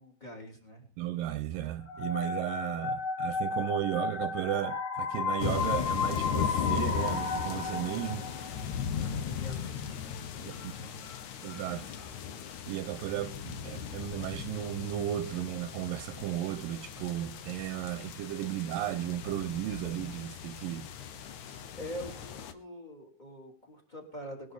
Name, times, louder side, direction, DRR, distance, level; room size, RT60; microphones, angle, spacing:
voice 1, 0.0-0.9 8.9-11.2 21.8-24.5, equal, 10° left, 3.4 m, -45 dB
voice 2, 1.0-8.3 10.8-11.0 11.4-11.9 12.7-20.9, right 13 dB, 80° right, 2.4 m, -35 dB
sound 1, 1.9-8.7, left 5 dB, 40° left, 2.8 m, -33 dB
sound 2, 5.4-22.5, left 7 dB, 65° left, 2.1 m, -38 dB
sound 3, 9.6-12.6 13.0-13.1 13.4-13.5, left 6 dB, 85° left, 5.9 m, -56 dB
20.0 x 11.0 x 4.0 m
omnidirectional pair, 4.1 m